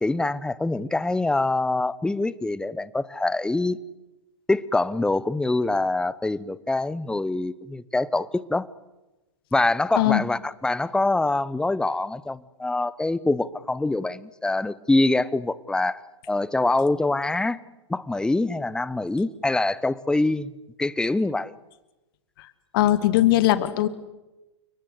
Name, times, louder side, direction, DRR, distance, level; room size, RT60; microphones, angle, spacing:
voice 1, 0.0-3.8 4.5-8.7 9.5-16.0 16.3-17.6 17.9-20.5 20.8-21.5, left 2 dB, 5° left, 19 dB, 0.8 m, -24 dB
voice 2, 22.7-23.9, left 14 dB, 50° left, 12 dB, 1.9 m, -19 dB
29.5 x 19.5 x 8.2 m, 1.1 s
figure-of-eight pair, 100°, 15 cm